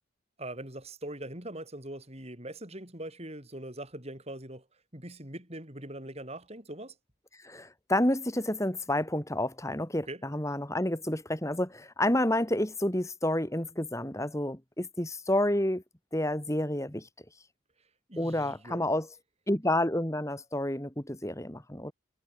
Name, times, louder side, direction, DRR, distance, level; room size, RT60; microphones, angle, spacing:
voice 1, 0.4-4.7 4.9-7.0 10.0-10.2 18.1-19.0, right 1 dB, 30° right, 6.2 m, -42 dB
voice 2, 7.4-15.8 16.1-17.1 18.2-19.1 19.5-21.9, left 1 dB, 15° left, 2.6 m, -29 dB
head